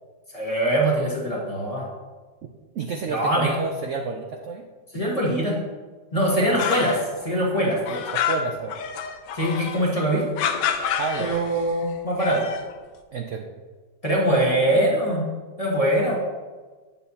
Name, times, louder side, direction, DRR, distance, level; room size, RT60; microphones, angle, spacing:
voice 1, 0.3-1.9 3.1-3.5 4.9-5.6 6.1-8.0 9.3-10.3 11.2-12.5 14.0-15.3 15.6-16.2, right 1 dB, 20° left, -4 dB, 1.3 m, -22 dB
voice 2, 2.7-4.7 6.1-6.6 8.1-8.8 11.0-11.3 13.1-13.5 14.7-14.9, right 4 dB, 75° right, 3 dB, 0.7 m, -30 dB
sound 1, 6.2-7.2 7.5-9.8 10.4-11.7 12.1-12.7, left 8 dB, 80° left, 1.3 m, -28 dB
8.8 x 7.2 x 2.8 m, 1.4 s
omnidirectional pair, 2.0 m